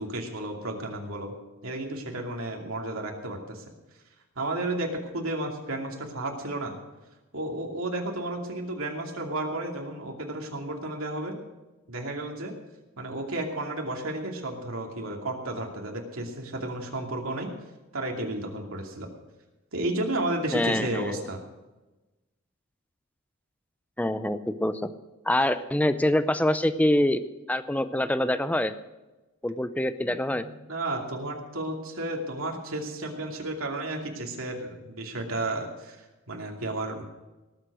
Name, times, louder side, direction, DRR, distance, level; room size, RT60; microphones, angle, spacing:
voice 1, 0.0-1.3 1.6-3.6 4.4-6.8 7.3-11.4 11.9-12.5 13.0-17.5 17.9-19.1 19.7-21.4 30.0-36.0 36.3-37.0, right 1 dB, 75° right, 1 dB, 2.6 m, -32 dB
voice 2, 20.5-21.2 24.0-24.9 25.3-27.2 27.5-28.7 29.4-30.5, left 1 dB, 5° left, 12 dB, 0.5 m, -25 dB
18.5 x 8.0 x 6.3 m, 1.1 s
head